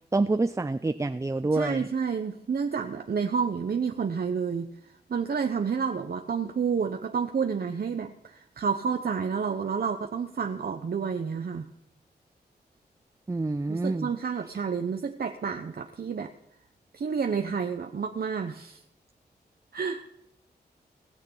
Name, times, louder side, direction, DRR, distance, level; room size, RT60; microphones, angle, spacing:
voice 1, 0.1-1.9 13.3-14.1, right 3 dB, 15° right, 12 dB, 0.5 m, -27 dB
voice 2, 1.5-4.7 5.1-11.7 13.7-16.3 16.9-18.8 19.7-20.0, right 6 dB, 60° right, 5 dB, 0.9 m, -30 dB
19.0 x 6.6 x 5.5 m, 0.83 s
cardioid pair, 55°, 18 cm